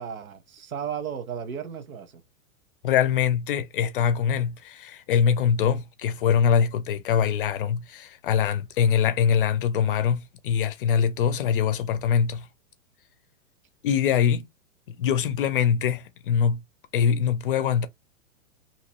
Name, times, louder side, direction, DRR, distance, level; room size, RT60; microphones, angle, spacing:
voice 1, 0.0-2.2, right 8 dB, 90° right, 1.2 m, -34 dB
voice 2, 2.8-10.2 10.4-12.5 13.8-14.5 15.0-16.6 16.9-17.9, left 7 dB, 40° left, 0.5 m, -23 dB
3.0 x 2.9 x 2.9 m
hypercardioid pair, 155°, 41 cm